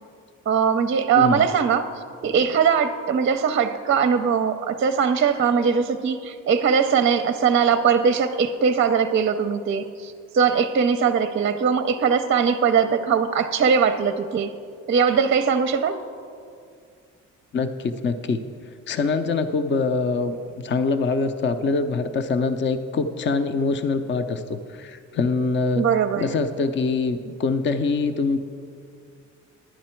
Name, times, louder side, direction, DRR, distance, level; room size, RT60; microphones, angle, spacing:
voice 1, 0.5-1.9 2.2-14.5 14.9-16.0 25.8-26.3, right 6 dB, 40° right, 9 dB, 0.5 m, -21 dB
voice 2, 1.1-1.5 17.5-18.4 18.9-25.8 26.2-28.4, left 4 dB, 40° left, 9 dB, 0.6 m, -24 dB
11.5 x 9.3 x 4.4 m, 2.3 s
cardioid pair, 90°, 30 cm